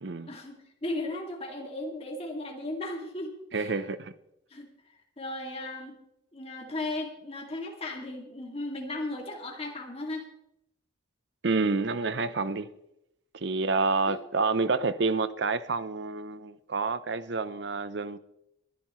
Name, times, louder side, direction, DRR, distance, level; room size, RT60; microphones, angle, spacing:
voice 1, 0.3-3.7 4.5-4.7 5.2-6.0 6.3-10.3 14.1-14.2, left 2 dB, 30° left, 2.4 m, -36 dB
voice 2, 3.5-4.1 11.4-12.7 13.3-18.2, right 4 dB, 60° right, 0.7 m, -28 dB
22.5 x 11.0 x 3.1 m
head